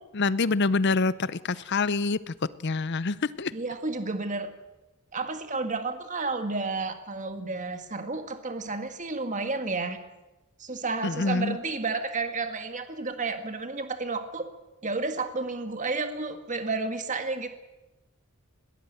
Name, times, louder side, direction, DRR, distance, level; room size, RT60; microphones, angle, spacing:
voice 1, 0.1-2.3 2.6-3.5 11.0-11.6, left 3 dB, 50° left, 18 dB, 0.6 m, -26 dB
voice 2, 3.5-4.5 5.1-10.0 10.6-14.5 14.8-17.5, right 3 dB, 35° right, 7 dB, 1.7 m, -31 dB
21.0 x 18.0 x 8.0 m, 1.1 s
head